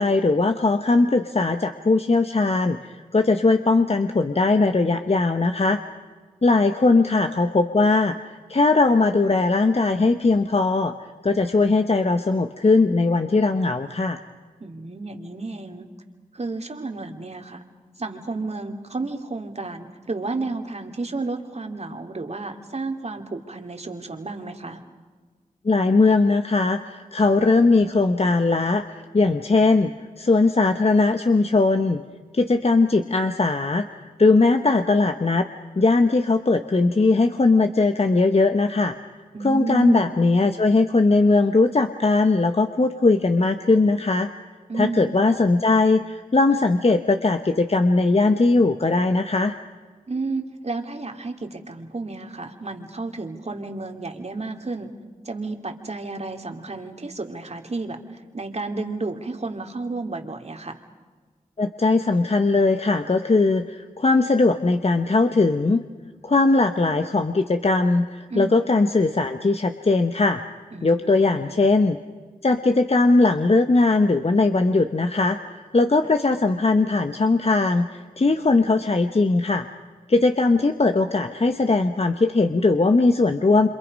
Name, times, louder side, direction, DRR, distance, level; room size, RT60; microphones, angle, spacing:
voice 1, 0.0-5.8 6.4-11.0 11.2-14.2 25.6-32.0 32.3-33.9 34.2-35.5 35.8-38.9 39.4-44.3 44.7-49.6 61.6-65.8 66.2-70.4 70.8-72.0 72.4-79.7 80.1-83.7, left 3 dB, 45° left, 7 dB, 1.2 m, -19 dB
voice 2, 14.6-15.9 16.3-17.6 18.0-24.8 39.3-40.2 44.7-45.2 50.1-54.9 55.2-60.8 68.3-68.7 70.7-71.5 76.0-76.2, right 3 dB, 45° right, 5 dB, 2.8 m, -32 dB
28.5 x 26.5 x 5.4 m, 1.4 s
cardioid pair, 40°, 15 cm